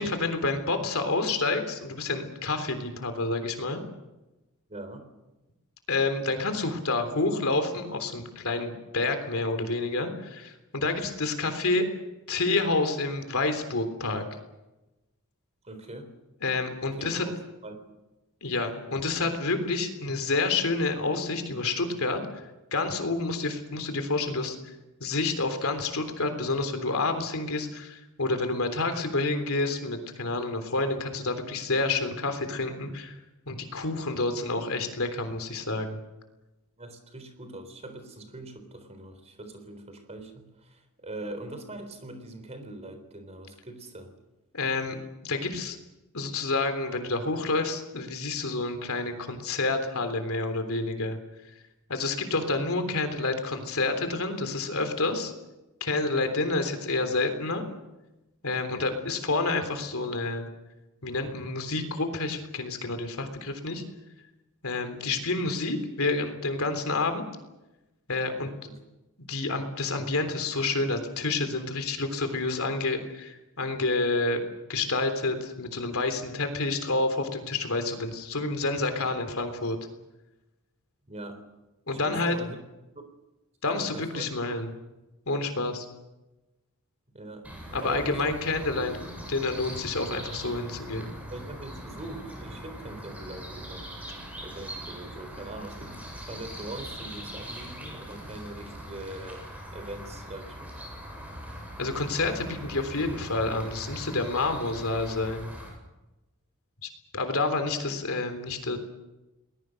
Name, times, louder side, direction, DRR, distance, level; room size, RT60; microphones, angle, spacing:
voice 1, 0.0-3.8 5.9-11.9 12.3-14.2 16.4-17.2 18.4-22.2 22.7-24.6 25.0-33.2 33.5-36.0 44.5-45.0 45.2-45.8 46.1-51.2 51.9-55.3 55.8-57.6 58.4-60.5 61.0-63.8 64.6-67.2 68.1-68.5 69.2-74.4 74.7-79.8 81.9-82.4 83.6-84.7 85.3-85.9 87.7-89.0 89.3-91.2 101.8-105.5 106.8-108.8, left 3 dB, 70° left, 7 dB, 3.5 m, -29 dB
voice 2, 4.7-5.1 15.6-16.1 17.0-17.2 17.6-17.8 36.8-44.1 68.6-68.8 81.1-81.4 81.9-82.6 83.7-84.4 87.1-87.5 87.8-88.4 88.8-88.9 91.3-94.0 94.4-100.7, right 2 dB, 30° right, 8 dB, 3.8 m, -42 dB
sound 1, 87.4-105.7, equal, 5° right, 7.8 m, -41 dB
30.0 x 20.5 x 6.5 m, 1.0 s
head